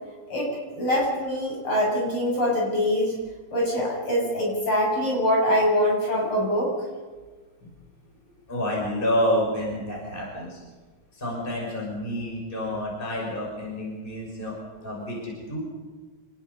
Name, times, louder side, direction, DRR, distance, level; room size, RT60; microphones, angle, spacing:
voice 1, 0.3-3.2 3.5-6.7, equal, 40° left, -3 dB, 8.5 m, -24 dB
voice 2, 8.5-10.6 11.1-15.6, equal, 15° left, -2 dB, 6.4 m, -29 dB
29.5 x 20.5 x 5.5 m, 1.4 s
omnidirectional pair, 3.5 m